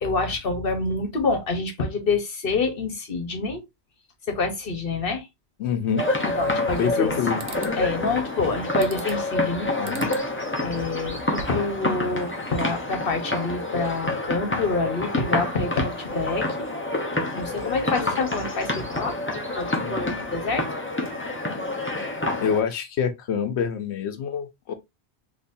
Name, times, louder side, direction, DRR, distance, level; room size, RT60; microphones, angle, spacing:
voice 1, 0.0-3.6 4.3-5.3 6.4-7.1 7.8-9.7 10.1-10.2 10.6-16.7 17.3-19.2 19.5-20.7, left 3 dB, 60° left, 1.2 m, -27 dB
voice 2, 5.6-6.0 6.7-7.4 9.8-10.1 19.7-20.3 22.4-24.7, left 7 dB, 90° left, 0.9 m, -26 dB
sound 1, 6.0-22.6, left 2 dB, 15° left, 0.7 m, -28 dB
sound 2, 6.4-7.1 7.4-7.8 8.8-9.3 9.8-10.3 10.7-11.7, right 4 dB, 90° right, 1.0 m, -41 dB
4.0 x 2.9 x 2.6 m
omnidirectional pair, 1.1 m